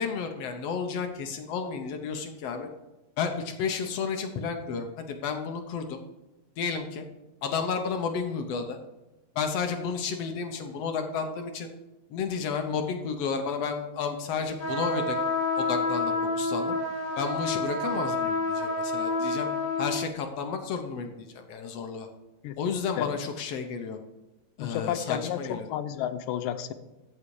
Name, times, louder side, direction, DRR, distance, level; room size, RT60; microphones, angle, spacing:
voice 1, 0.0-2.7 3.2-6.0 6.6-7.0 7.4-8.8 9.3-11.7 12.1-15.2 15.6-16.8 17.2-19.5 19.8-22.1 22.6-24.0 24.6-25.7, left 5 dB, 65° left, 5 dB, 1.6 m, -32 dB
sound 1, 14.6-20.0, left 3 dB, 40° left, 3.9 m, -28 dB
voice 2, 24.6-26.7, left 10 dB, 85° left, 9 dB, 2.4 m, -31 dB
14.0 x 5.7 x 4.8 m, 1.0 s
omnidirectional pair, 3.9 m